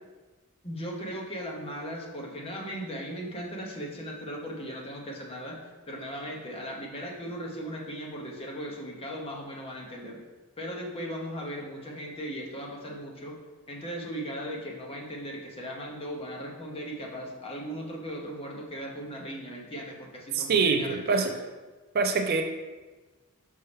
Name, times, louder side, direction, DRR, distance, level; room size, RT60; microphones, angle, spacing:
voice 1, 0.6-10.2 10.6-13.4 13.7-21.3, equal, 25° left, -1 dB, 1.0 m, -38 dB
voice 2, 20.3-21.3 21.9-22.4, right 4 dB, 45° right, 5 dB, 0.5 m, -24 dB
5.5 x 5.4 x 3.4 m, 1.3 s
head